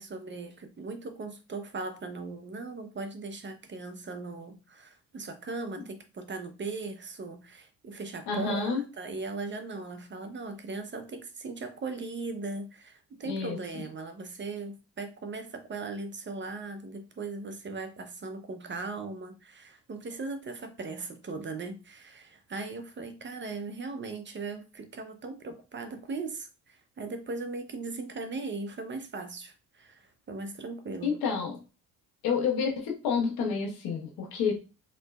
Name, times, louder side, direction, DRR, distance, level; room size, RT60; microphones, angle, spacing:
voice 1, 0.0-31.1, right 3 dB, 30° right, 7 dB, 0.7 m, -38 dB
voice 2, 8.3-8.8 13.2-13.8 31.0-31.6 32.2-34.6, left 5 dB, 85° left, 1 dB, 1.2 m, -29 dB
3.9 x 3.0 x 2.3 m, 0.31 s
supercardioid pair, 75°, 36 cm